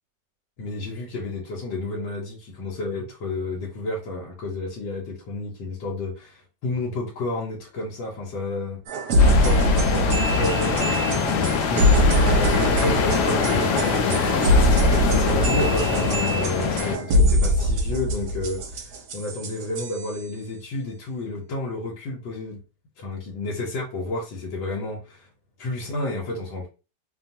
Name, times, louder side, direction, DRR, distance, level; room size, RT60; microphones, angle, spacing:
voice 1, 0.6-8.8 9.3-22.6 23.0-25.3 25.6-26.7, left 2 dB, 90° left, 1.5 m, -31 dB
sound 1, 8.9-20.2, equal, 65° right, 1.1 m, -22 dB
sound 2, 9.2-17.0, left 5 dB, 75° left, 1.1 m, -23 dB
3.1 x 2.3 x 2.6 m
omnidirectional pair, 2.0 m